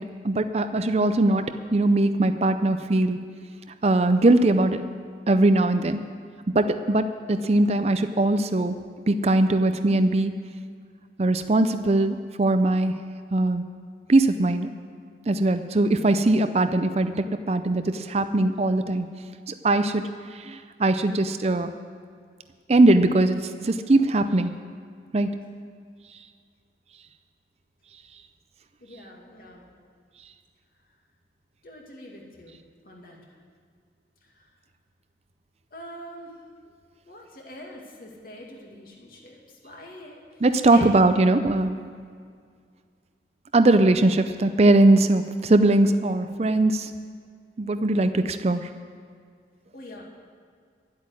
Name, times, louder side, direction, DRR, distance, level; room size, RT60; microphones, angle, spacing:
voice 1, 0.0-3.2 3.8-4.8 5.3-6.0 6.5-8.8 9.1-10.3 11.2-13.0 13.3-13.6 14.1-14.7 15.3-19.1 19.5-20.1 20.3-21.7 22.7-24.5 25.1-25.3 40.4-41.8 43.5-46.9 47.6-48.7, right 2 dB, 35° right, 9 dB, 0.5 m, -21 dB
voice 2, 28.8-29.7 31.6-32.6 32.8-33.2 34.2-34.5 35.7-36.4 37.0-40.4 40.7-41.0 49.7-50.0, equal, 55° left, -1 dB, 2.4 m, -44 dB
11.5 x 8.4 x 9.6 m, 2.1 s
head